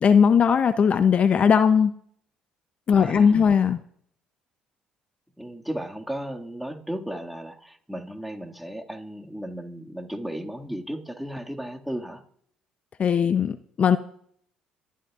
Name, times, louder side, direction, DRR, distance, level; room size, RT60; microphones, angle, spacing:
voice 1, 0.0-1.9 2.9-3.8 13.0-14.0, left 7 dB, 50° left, 12 dB, 0.6 m, -19 dB
voice 2, 2.9-3.5 5.4-12.2, right 1 dB, 5° right, 1 dB, 2.1 m, -35 dB
26.0 x 12.0 x 2.5 m, 0.63 s
hypercardioid pair, 60°, 3 cm